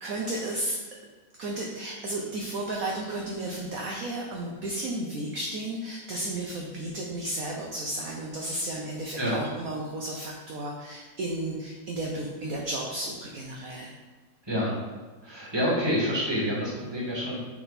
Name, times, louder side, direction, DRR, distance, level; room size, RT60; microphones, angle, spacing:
voice 1, 0.0-0.8 1.4-13.9, right 1 dB, 60° right, -1 dB, 1.0 m, -33 dB
voice 2, 14.5-14.8 15.2-17.4, equal, 15° right, -6 dB, 1.7 m, -27 dB
6.6 x 4.2 x 4.2 m, 1.3 s
omnidirectional pair, 2.1 m